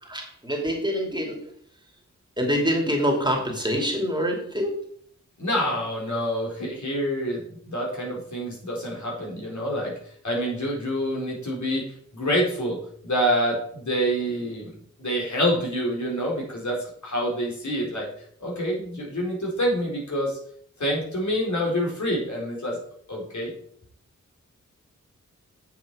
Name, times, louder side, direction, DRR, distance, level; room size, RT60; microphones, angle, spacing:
voice 1, 0.0-1.5 2.4-4.8, equal, 15° right, 1 dB, 2.5 m, -25 dB
voice 2, 5.4-10.0 10.2-11.8 12.1-14.7 15.0-18.1 18.4-20.4 20.8-22.8 23.1-23.5, equal, 70° left, -3 dB, 4.2 m, -27 dB
8.4 x 7.3 x 4.9 m, 0.62 s
wide cardioid pair, 90°, 30 cm